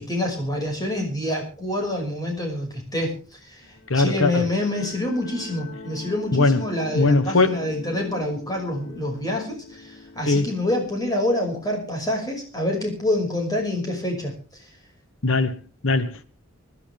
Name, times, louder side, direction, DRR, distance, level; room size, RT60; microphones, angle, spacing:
voice 1, 0.0-3.7 3.9-14.3, left 1 dB, 20° left, 5.7 m, -27 dB
sound 1, 3.6-12.2, left 3 dB, 85° left, 3.1 m, -42 dB
voice 2, 3.9-4.4 6.3-6.6 6.9-7.6 10.3-10.5 15.2-16.2, left 3 dB, 70° left, 1.3 m, -20 dB
25.5 x 11.0 x 3.5 m
head